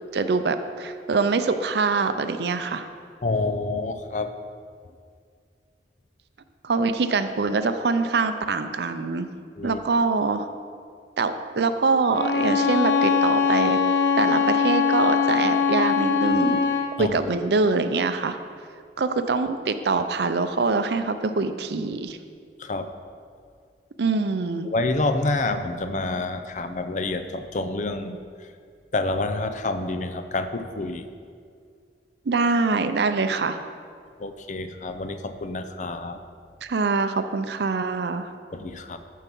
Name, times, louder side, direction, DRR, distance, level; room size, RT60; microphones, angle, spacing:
voice 1, 0.1-2.8 6.6-9.3 9.6-10.5 11.2-13.8 14.2-16.7 17.0-18.4 19.0-22.2 24.0-24.7 32.3-33.6 36.6-38.3, right 4 dB, 65° right, 9 dB, 0.5 m, -24 dB
voice 2, 3.2-4.3 9.6-9.8 17.0-17.1 22.6-22.9 24.6-28.2 28.9-31.0 34.2-36.2 38.5-39.0, left 2 dB, 45° left, 8 dB, 0.6 m, -28 dB
Bowed string instrument, 12.1-17.0, left 6 dB, 90° left, 0.7 m, -22 dB
14.0 x 4.7 x 5.4 m, 2.2 s
head